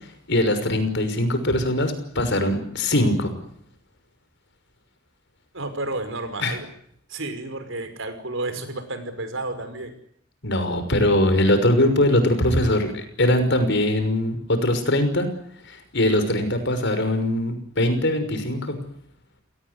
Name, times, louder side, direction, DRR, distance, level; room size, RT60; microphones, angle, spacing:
voice 1, 0.3-3.3 6.4-6.5 10.4-15.3 15.6-18.8, left 1 dB, 60° left, 9 dB, 6.0 m, -21 dB
voice 2, 5.5-6.7 7.1-9.9, right 2 dB, 65° right, 10 dB, 5.5 m, -31 dB
28.5 x 18.5 x 9.9 m, 0.70 s
head